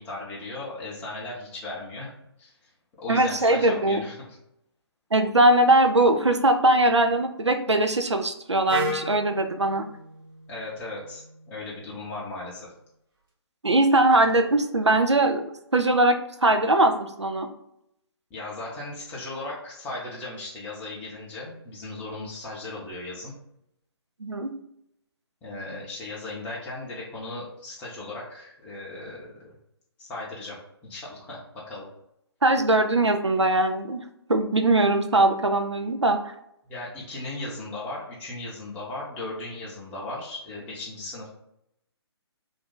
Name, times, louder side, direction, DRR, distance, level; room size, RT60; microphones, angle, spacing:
voice 1, 0.0-2.1 2.4-2.7 3.0-4.2 10.5-12.7 18.3-23.3 25.4-29.5 30.0-30.6 30.8-31.9 36.7-41.3, left 2 dB, 10° left, -6 dB, 0.6 m, -37 dB
voice 2, 3.1-4.0 5.1-9.8 13.6-15.4 15.7-16.2 16.4-17.5 24.2-24.5 32.4-34.0 34.3-36.3, right 2 dB, 90° right, 7 dB, 0.5 m, -21 dB
Wind instrument woodwind instrument, 8.7-12.6, equal, 50° right, 0.9 m, -36 dB
2.6 x 2.5 x 3.7 m, 0.79 s
figure-of-eight pair, 140°, 14 cm